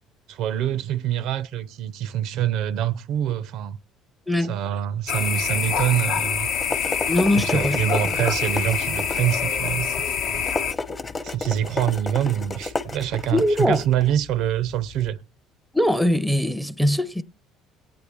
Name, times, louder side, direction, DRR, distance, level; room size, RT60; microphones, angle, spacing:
voice 1, 0.3-3.8 4.5-6.5 7.4-10.4 11.2-15.2, right 11 dB, 70° right, 0.4 m, -25 dB
sound 1, 5.1-10.7, left 7 dB, 70° left, 0.8 m, -26 dB
sound 2, 6.4-15.1, left 3 dB, 25° left, 0.8 m, -33 dB
voice 2, 7.1-7.8 13.3-13.8 15.7-17.2, left 1 dB, ahead, 0.5 m, -21 dB
22.0 x 8.5 x 3.4 m
cardioid pair, 115°, 0 cm